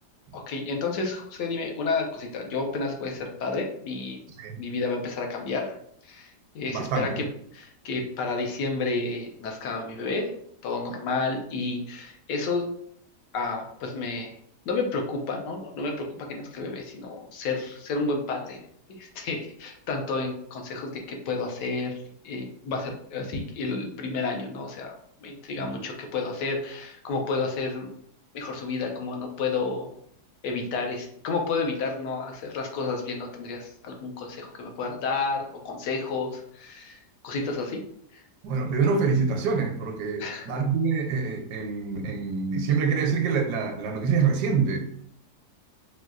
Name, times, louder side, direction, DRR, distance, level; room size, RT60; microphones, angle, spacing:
voice 1, 0.3-4.2 4.6-5.8 6.0-7.2 7.5-10.3 10.6-12.7 13.3-14.3 14.7-18.6 18.9-24.9 25.2-27.9 28.3-29.9 30.4-37.8 38.1-38.2 40.2-40.5, left 3 dB, 90° left, 1.3 m, -31 dB
voice 2, 6.7-7.3 25.6-25.7 38.4-44.8, right 5 dB, 80° right, 1.2 m, -26 dB
4.3 x 2.2 x 2.4 m
omnidirectional pair, 1.8 m